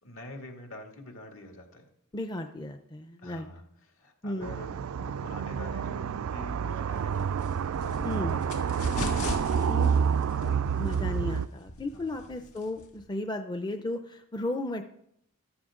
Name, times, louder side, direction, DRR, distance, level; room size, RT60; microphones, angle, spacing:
voice 1, 0.0-1.9 3.2-7.4 7.7-11.1 11.9-12.2, left 1 dB, 65° left, 2 dB, 2.4 m, -46 dB
voice 2, 2.1-3.5 4.2-4.5 8.0-8.3 9.7-10.0 10.8-14.9, left 1 dB, 20° left, 6 dB, 0.6 m, -34 dB
sound 1, 4.4-11.5, right 7 dB, 70° right, 0.3 m, -29 dB
sound 2, 6.9-13.0, left 1 dB, 85° left, 2.1 m, -38 dB
14.0 x 12.0 x 3.8 m, 0.73 s
head